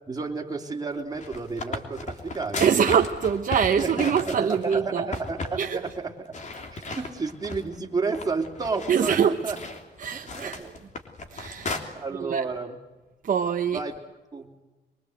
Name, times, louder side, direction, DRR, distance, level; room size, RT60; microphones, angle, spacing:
voice 1, 0.1-2.8 3.8-6.4 6.7-9.6 10.1-10.7 11.9-12.8 13.7-13.9 14.3-14.5, right 4 dB, 20° right, 3.4 m, -32 dB
sound 1, 1.0-4.8 5.1-5.6 5.8-6.0 6.3-7.8 8.1-11.8, left 3 dB, 45° left, 3.1 m, -35 dB
voice 2, 2.6-5.1 5.6-5.8 8.9-9.4 10.0-10.6 11.3-12.5 13.2-13.8, right 7 dB, 50° right, 1.0 m, -24 dB
24.0 x 24.0 x 8.0 m
cardioid pair, 120°, 18 cm